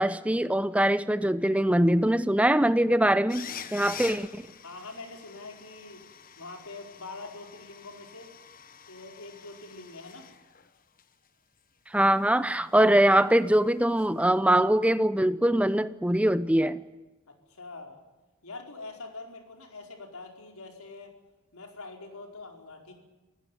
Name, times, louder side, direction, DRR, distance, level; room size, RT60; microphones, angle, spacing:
voice 1, 0.0-4.4 11.9-16.8, right 1 dB, 5° right, 14 dB, 0.7 m, -23 dB
sound 1, 3.3-10.7 11.0-11.1 14.0-14.1, left 8 dB, 40° left, 1.2 m, -46 dB
voice 2, 4.6-6.0 6.4-8.3 8.9-10.3 17.5-18.0 18.4-21.1 21.5-22.9, left 3 dB, 80° left, 3 dB, 4.8 m, -44 dB
26.5 x 16.0 x 9.3 m, 1.2 s
head